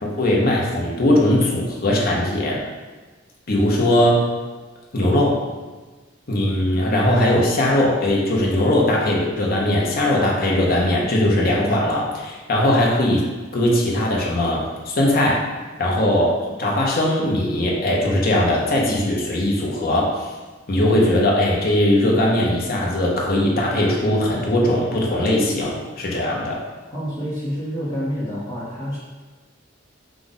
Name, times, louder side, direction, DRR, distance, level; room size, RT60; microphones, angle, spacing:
voice 1, 0.0-2.6 3.5-4.3 4.9-5.4 6.3-13.3 13.5-15.5 15.8-20.3 20.7-26.6, left 1 dB, 50° left, -3 dB, 0.9 m, -19 dB
voice 2, 26.9-29.0, equal, 25° left, -10 dB, 1.0 m, -28 dB
4.9 x 2.5 x 4.1 m, 1.3 s
head